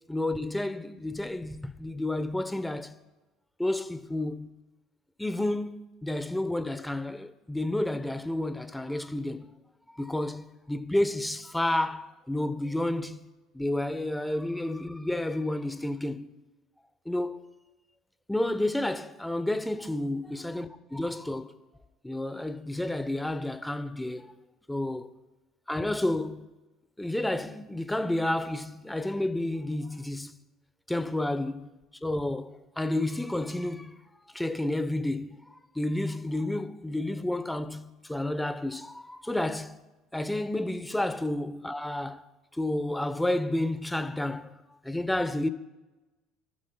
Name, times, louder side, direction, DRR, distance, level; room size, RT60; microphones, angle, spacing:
voice 1, 0.1-3.0 3.6-4.5 5.2-9.5 9.9-13.2 13.5-16.3 17.0-17.5 18.3-21.5 22.0-24.3 24.7-25.1 25.7-26.5 27.0-30.4 30.9-31.7 32.0-34.0 34.3-39.8 40.1-42.2 42.5-44.6 44.8-45.5, left 1 dB, 5° left, 1.0 m, -30 dB
28.0 x 13.5 x 2.4 m
hypercardioid pair, 70°, 0 cm